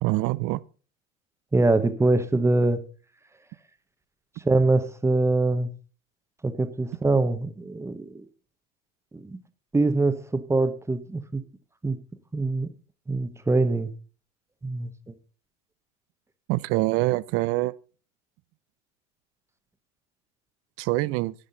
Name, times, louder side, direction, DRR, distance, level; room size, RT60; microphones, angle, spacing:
voice 1, 0.0-0.6 16.5-17.7 20.8-21.3, right 19 dB, 35° right, 0.5 m, -25 dB
voice 2, 1.5-2.8 4.4-5.7 6.4-8.1 9.1-9.4 9.7-11.4 11.8-12.0 12.3-12.7 13.1-13.9 14.6-14.9, right 2 dB, 5° right, 0.9 m, -23 dB
12.5 x 9.6 x 3.9 m
supercardioid pair, 130°, 40 cm